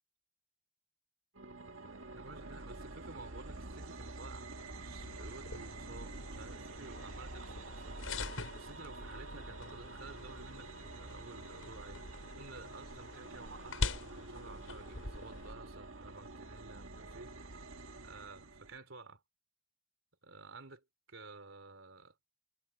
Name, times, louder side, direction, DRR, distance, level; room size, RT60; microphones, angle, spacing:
sound 1, 1.3-18.8, right 2 dB, 85° right, 1.8 m, -48 dB
voice 1, 2.1-12.0 12.4-13.8 14.1-17.3 18.0-19.2 20.2-22.2, right 3 dB, 70° right, 3.8 m, -52 dB
sound 2, 5.0-15.5, left 3 dB, 85° left, 6.1 m, -44 dB
head